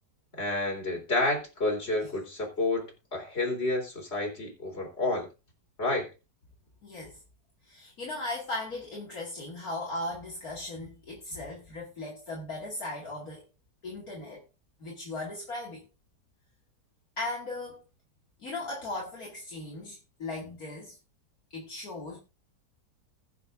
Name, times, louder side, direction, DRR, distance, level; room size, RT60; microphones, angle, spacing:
voice 1, 0.4-2.9 3.1-5.3 5.8-6.1, left 2 dB, 35° left, 4.0 m, -29 dB
voice 2, 6.8-7.2 7.7-13.4 13.8-14.4 14.8-15.8 17.2-17.8 18.4-21.0 21.5-22.2, left 2 dB, 55° left, 2.8 m, -37 dB
20.5 x 7.0 x 2.6 m
omnidirectional pair, 1.9 m